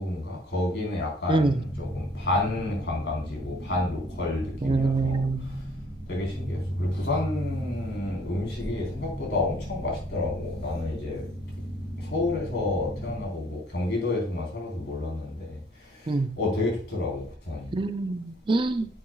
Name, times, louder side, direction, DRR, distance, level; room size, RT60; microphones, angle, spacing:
voice 1, 0.0-5.6 6.1-11.3 12.0-17.8, left 2 dB, 75° left, -2 dB, 4.0 m, -30 dB
sound 1, 1.6-13.2, equal, 5° left, 2.1 m, -36 dB
voice 2, 4.6-5.5 16.1-16.3 17.7-18.9, right 3 dB, 30° right, 10 dB, 0.4 m, -25 dB
10.0 x 7.6 x 2.3 m, 0.42 s
head